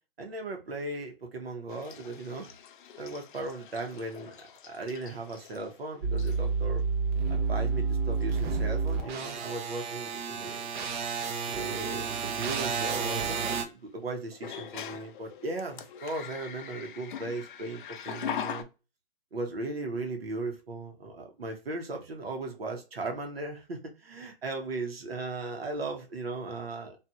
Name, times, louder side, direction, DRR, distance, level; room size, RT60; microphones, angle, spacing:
voice 1, 0.2-2.5 3.0-4.3 4.6-6.8 7.3-10.7 11.5-18.7 19.3-27.0, right 2 dB, 85° right, 1.0 m, -37 dB
sound 1, 1.7-5.8 6.2-6.6 7.6-7.7 8.1-8.6 8.9-9.2 11.2-11.3 14.3-18.6, left 9 dB, 60° left, 0.4 m, -42 dB
sound 2, 6.0-13.6, right 5 dB, 55° right, 0.6 m, -30 dB
2.9 x 2.5 x 2.3 m
hypercardioid pair, 130°, 29 cm